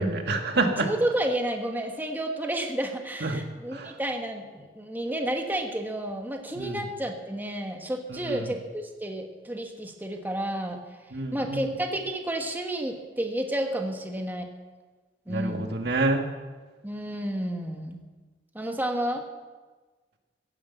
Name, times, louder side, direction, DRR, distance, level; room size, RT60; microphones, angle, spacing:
voice 1, 0.0-0.9 3.2-3.4 3.7-3.9 6.6-6.8 8.1-8.5 11.1-11.6 15.3-16.3, right 2 dB, 65° right, 4 dB, 1.7 m, -27 dB
voice 2, 0.8-10.8 11.3-14.5 15.3-15.7 16.8-18.0 18.5-19.2, right 1 dB, 10° right, 3 dB, 1.3 m, -31 dB
15.5 x 10.0 x 8.1 m, 1.3 s
head